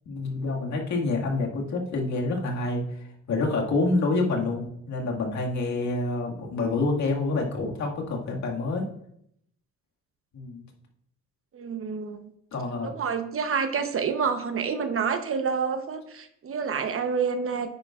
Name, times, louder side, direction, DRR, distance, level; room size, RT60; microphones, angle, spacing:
voice 1, 0.1-8.8 10.3-10.6 12.5-12.9, left 3 dB, 65° left, -1 dB, 2.1 m, -27 dB
voice 2, 11.5-12.2 12.8-17.7, right 6 dB, 45° right, 8 dB, 1.0 m, -28 dB
9.5 x 9.1 x 2.5 m, 0.73 s
cardioid pair, 90°, 30 cm